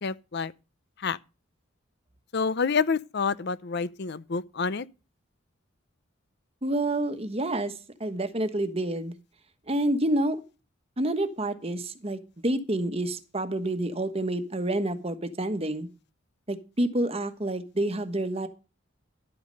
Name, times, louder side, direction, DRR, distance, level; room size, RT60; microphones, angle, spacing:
voice 1, 0.0-0.5 1.0-1.2 2.3-4.9, left 5 dB, 55° left, 0.6 m, -28 dB
voice 2, 6.6-7.7 8.0-9.1 9.7-10.4 11.0-15.9 16.5-18.5, right 1 dB, 30° right, 1.3 m, -28 dB
11.5 x 8.8 x 5.2 m
head